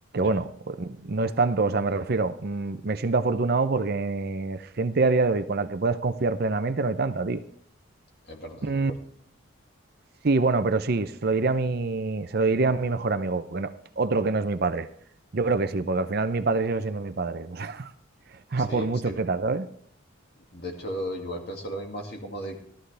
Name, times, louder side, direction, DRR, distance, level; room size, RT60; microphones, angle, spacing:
voice 1, 0.1-7.4 8.6-8.9 10.2-14.9 15.3-17.9 18.5-19.7, right 3 dB, 45° right, 0.5 m, -25 dB
voice 2, 8.3-9.0 18.6-19.2 20.5-22.6, equal, 50° left, 2.2 m, -36 dB
14.0 x 13.0 x 3.4 m
head